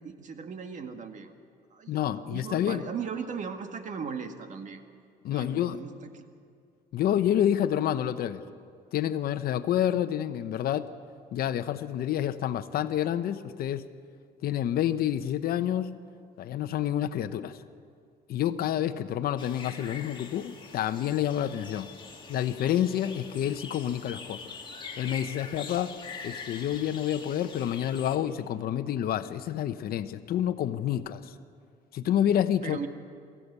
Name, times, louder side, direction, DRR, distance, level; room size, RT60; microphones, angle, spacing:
voice 1, 0.0-1.3 1.7-4.8 5.3-6.2 32.6-32.9, right 6 dB, 45° right, 6 dB, 1.9 m, -38 dB
voice 2, 1.9-2.8 5.2-5.8 6.9-8.4 8.9-10.9 11.3-13.8 14.4-15.9 16.4-17.6 18.3-21.9 22.3-24.4 25.0-25.9 26.2-31.3 31.9-32.8, left 10 dB, 65° left, 11 dB, 0.9 m, -28 dB
sound 1, 19.4-28.2, left 5 dB, 30° left, 2.5 m, -44 dB
22.5 x 15.0 x 8.3 m, 2.2 s
cardioid pair, 110°, 17 cm